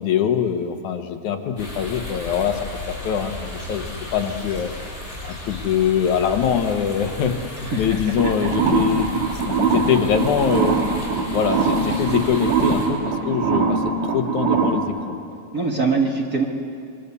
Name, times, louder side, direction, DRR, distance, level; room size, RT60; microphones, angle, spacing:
voice 1, 0.0-2.6 2.9-3.8 4.1-4.7 5.2-10.8 11.3-15.2, left 8 dB, 80° left, 6 dB, 2.7 m, -23 dB
sound 1, 1.6-12.9, left 2 dB, 10° left, 6.5 m, -34 dB
voice 2, 7.6-8.0 15.5-16.4, right 4 dB, 35° right, 0 dB, 1.9 m, -22 dB
sound 2, 8.2-14.8, right 5 dB, 65° right, 3.6 m, -22 dB
26.5 x 23.0 x 7.0 m, 2.4 s
omnidirectional pair, 3.3 m